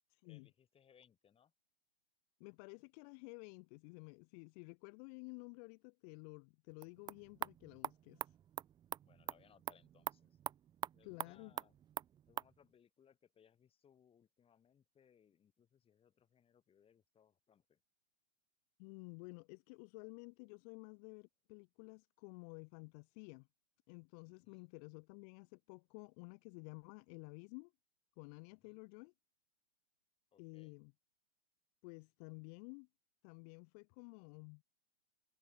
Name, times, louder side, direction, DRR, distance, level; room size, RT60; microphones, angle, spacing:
voice 1, 0.2-1.5 9.0-10.4 10.9-11.8 12.3-17.8 24.2-24.7 28.6-28.8 30.3-30.8, left 8 dB, 15° left, 6.3 m, -69 dB
voice 2, 2.4-8.3 11.0-11.5 18.8-23.5 23.9-27.7 28.2-29.1 30.4-30.9 31.8-32.9 33.2-34.6, left 35 dB, 35° left, 3.4 m, -53 dB
sound 1, 6.7-12.5, right 10 dB, 10° right, 0.7 m, -46 dB
figure-of-eight pair, 115°, 34 cm